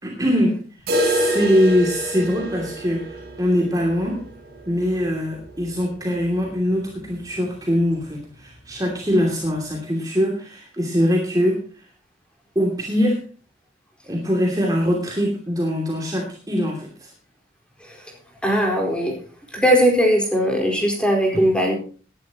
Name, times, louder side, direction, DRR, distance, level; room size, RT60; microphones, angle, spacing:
voice 1, 0.0-0.6 1.0-4.2 4.7-11.6 12.5-13.2 14.0-17.1 21.3-21.4, equal, 20° right, -1 dB, 2.7 m, -22 dB
sound 1, 0.9-6.7 7.0-7.1 7.4-7.5 8.0-8.1 9.0-9.1, right 1 dB, 55° right, 7.5 m, -28 dB
voice 2, 18.4-19.1 19.5-21.7, equal, 5° left, 0 dB, 4.5 m, -19 dB
18.5 x 11.0 x 3.0 m, 0.39 s
head